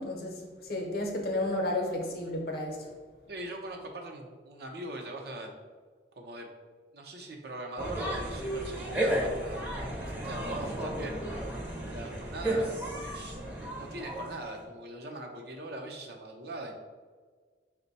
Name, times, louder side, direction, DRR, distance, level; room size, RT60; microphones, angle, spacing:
voice 1, 0.0-2.9, left 1 dB, 60° left, 1 dB, 0.8 m, -32 dB
voice 2, 3.3-5.5 6.2-6.5 6.9-11.2 11.9-16.7, right 1 dB, 60° right, 1 dB, 0.7 m, -41 dB
sound 1, 7.8-14.6, right 1 dB, 10° right, 0.6 m, -33 dB
5.2 x 2.2 x 4.0 m, 1.5 s
head